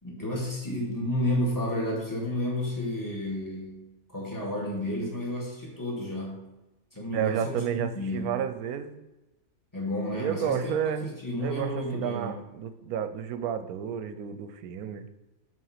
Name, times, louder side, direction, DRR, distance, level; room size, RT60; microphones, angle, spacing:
voice 1, 0.0-6.5 6.9-8.5 9.7-10.7 11.0-12.4, left 1 dB, 10° left, -4 dB, 2.0 m, -31 dB
voice 2, 7.1-9.0 10.1-11.1 11.4-15.1, right 8 dB, 75° right, 11 dB, 1.0 m, -31 dB
5.6 x 4.8 x 5.7 m, 1.0 s
omnidirectional pair, 1.6 m